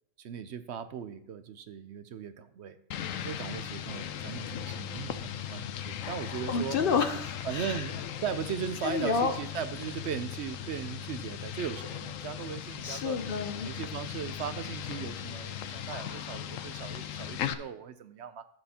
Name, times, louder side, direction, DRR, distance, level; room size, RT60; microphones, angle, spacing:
voice 1, 0.2-2.8 3.2-6.8 7.4-13.2 13.6-18.5, right 8 dB, 65° right, 11 dB, 0.9 m, -38 dB
sound 1, 2.9-17.5, left 9 dB, 85° left, 1.0 m, -38 dB
voice 2, 6.5-7.8 8.8-9.3 12.8-13.7, left 5 dB, 55° left, 8 dB, 0.7 m, -29 dB
12.0 x 8.1 x 2.8 m, 0.73 s
omnidirectional pair, 1.3 m